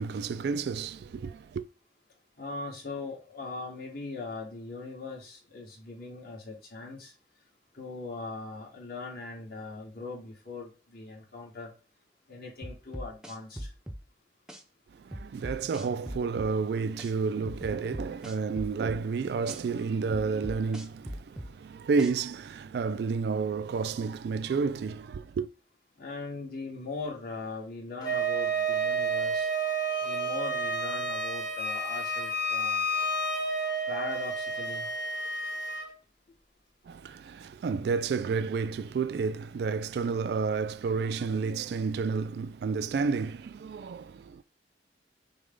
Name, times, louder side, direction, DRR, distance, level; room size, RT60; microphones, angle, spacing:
voice 1, 0.0-1.6 15.0-25.5 36.9-44.4, right 5 dB, 60° right, 0.3 m, -31 dB
voice 2, 2.4-7.1 7.7-11.7 12.3-13.7 26.0-29.5 30.0-32.8 33.9-34.9, left 3 dB, 55° left, 1.9 m, -40 dB
sound 1, 12.6-14.0 14.5-14.6 15.1-16.5 17.0-17.1 17.5-19.0 19.5-19.6 20.1-21.5 22.0-22.1, equal, 5° right, 0.6 m, -39 dB
Wind instrument woodwind instrument, 28.0-35.9, right 2 dB, 20° left, 1.0 m, -30 dB
6.2 x 2.3 x 3.8 m
head